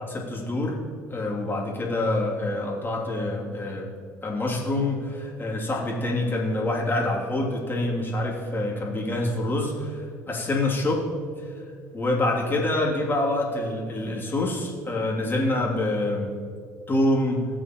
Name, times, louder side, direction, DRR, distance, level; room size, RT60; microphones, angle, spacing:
voice 1, 0.1-0.8 1.1-3.9 4.2-11.0 11.9-16.3 16.9-17.4, left 2 dB, 20° left, -3 dB, 2.9 m, -26 dB
17.5 x 8.2 x 3.1 m, 2.1 s
hypercardioid pair, 60°, 9 cm